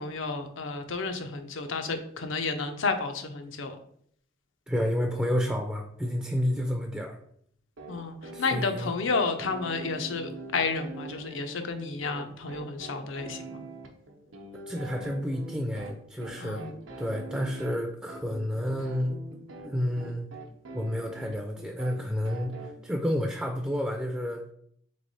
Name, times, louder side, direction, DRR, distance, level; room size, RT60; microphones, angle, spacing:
voice 1, 0.0-3.8 7.9-13.6 16.4-16.7, left 4 dB, 80° left, 7 dB, 0.6 m, -31 dB
voice 2, 4.7-7.2 8.3-8.9 14.7-16.7 17.0-19.4 19.6-20.3 20.7-24.4, equal, 5° right, 2 dB, 0.3 m, -30 dB
sound 1, 7.8-22.7, right 2 dB, 85° right, 0.7 m, -44 dB
3.5 x 3.2 x 4.0 m, 0.66 s
head